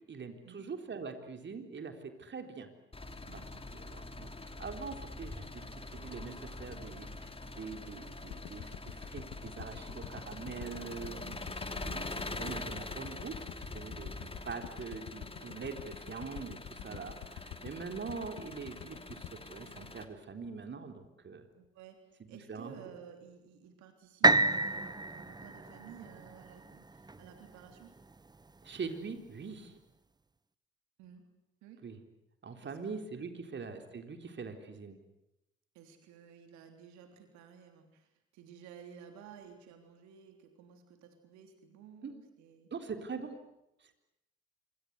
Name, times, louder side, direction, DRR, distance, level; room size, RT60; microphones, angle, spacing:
voice 1, 0.1-2.7 3.3-3.4 3.7-4.3 4.6-5.6 5.9-11.2 11.8-21.4 22.5-22.9 28.6-29.7 31.8-32.0 32.4-35.0 42.0-42.1 42.7-43.4, right 5 dB, 35° right, 6 dB, 3.9 m, -43 dB
Engine, 2.9-20.1, left 2 dB, 20° left, 3.3 m, -44 dB
sound 1, 8.3-20.6 21.0-21.1, left 13 dB, 55° left, 1.3 m, -48 dB
voice 2, 21.6-28.0 31.0-31.3 31.6-31.8 32.6-32.8 33.3-33.4 35.7-42.7, right 8 dB, 65° right, 6 dB, 3.5 m, -54 dB
sound 2, 24.2-28.2 28.8-28.9, right 3 dB, 15° right, 1.1 m, -30 dB
26.5 x 25.0 x 8.2 m, 0.88 s
figure-of-eight pair, 50°, 31 cm